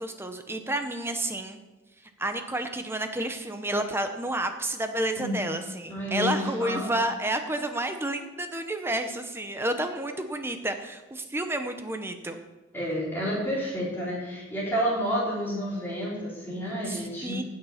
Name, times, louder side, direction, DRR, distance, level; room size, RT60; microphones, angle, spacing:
voice 1, 0.0-1.6 2.2-12.4 16.8-17.4, right 1 dB, 10° right, 7 dB, 0.7 m, -30 dB
voice 2, 5.9-6.9 12.7-17.4, equal, 10° left, -7 dB, 4.0 m, -30 dB
16.0 x 6.8 x 5.7 m, 1.2 s
head